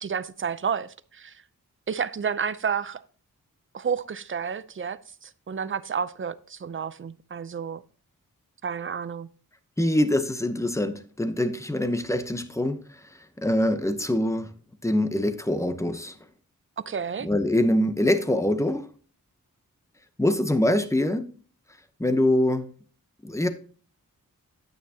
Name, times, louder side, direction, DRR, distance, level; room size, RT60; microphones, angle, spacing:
voice 1, 0.0-1.4 1.9-3.0 3.7-7.8 8.6-9.3 16.9-17.3, right 6 dB, 35° right, 0.5 m, -31 dB
voice 2, 9.8-12.8 13.4-14.5 14.8-16.2 17.2-18.9 20.2-21.3 22.0-22.7 23.2-23.5, left 1 dB, 10° left, 0.8 m, -24 dB
9.2 x 9.1 x 2.8 m
wide cardioid pair, 130°, 34 cm